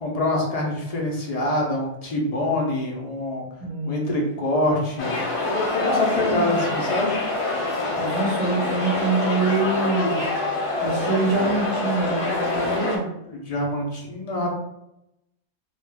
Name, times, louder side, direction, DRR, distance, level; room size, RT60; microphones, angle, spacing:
voice 1, 0.0-3.4 3.9-5.1 5.4-7.2 13.2-14.6, left 1 dB, 50° left, -1 dB, 0.4 m, -25 dB
voice 2, 3.6-4.2 5.8-6.6 8.0-10.2 10.8-13.1, right 3 dB, 25° right, -3 dB, 0.8 m, -25 dB
sound 1, 5.0-13.0, left 2 dB, 65° left, 0.9 m, -26 dB
2.3 x 2.2 x 3.3 m, 0.86 s
omnidirectional pair, 1.2 m